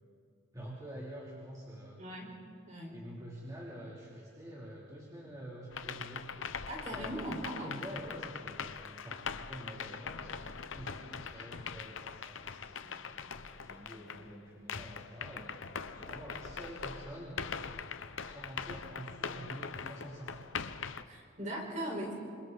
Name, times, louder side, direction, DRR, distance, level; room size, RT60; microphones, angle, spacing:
voice 1, 0.5-2.0 2.9-6.3 6.9-9.2 9.5-15.6 15.9-17.4 18.3-20.4, right 1 dB, 15° right, -6 dB, 3.1 m, -47 dB
voice 2, 2.0-2.3 2.7-3.0 6.7-7.8 21.0-22.2, right 1 dB, 35° right, -1 dB, 4.7 m, -39 dB
sound 1, 5.7-14.3 14.7-21.0, left 6 dB, 80° left, 0.9 m, -42 dB
27.5 x 27.0 x 4.1 m, 2.4 s
head